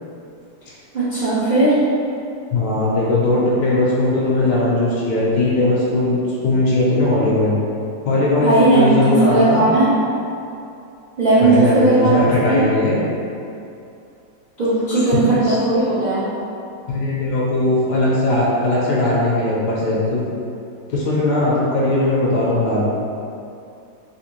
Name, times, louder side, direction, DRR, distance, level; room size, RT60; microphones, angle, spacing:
voice 1, 0.9-1.8 8.4-9.9 11.2-12.2 12.4-12.6 14.6-16.2, right 2 dB, 65° right, -13 dB, 0.5 m, -16 dB
voice 2, 2.5-7.6 8.0-9.6 11.4-13.0 15.1-15.6 16.9-20.2 20.9-22.9, left 2 dB, 70° left, -6 dB, 1.1 m, -19 dB
3.4 x 2.7 x 2.9 m, 2.6 s
omnidirectional pair, 2.1 m